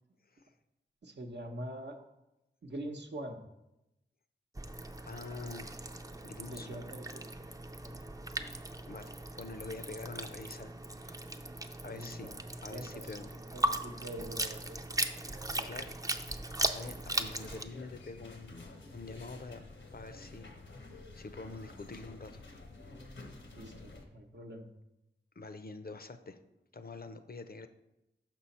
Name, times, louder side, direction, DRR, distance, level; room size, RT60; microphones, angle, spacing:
voice 1, 1.0-2.0 2.6-3.4 6.4-7.5 7.8-8.0 11.8-12.3 12.7-13.2 13.5-14.9 15.2-15.8 23.5-24.7, right 1 dB, 65° right, 3 dB, 0.8 m, -44 dB
sound 1, 4.5-17.6, right 1 dB, 20° right, 0.5 m, -38 dB
voice 2, 5.1-5.7 6.2-6.8 8.9-11.2 11.8-12.3 12.6-13.3 15.6-16.0 16.3-18.7 18.9-20.5 20.8-22.4 25.4-26.4 26.7-27.7, left 3 dB, 50° left, 9 dB, 0.6 m, -46 dB
sound 2, 16.9-24.1, left 2 dB, 80° left, 0.9 m, -50 dB
6.1 x 5.9 x 4.2 m, 0.91 s
wide cardioid pair, 50°, 19 cm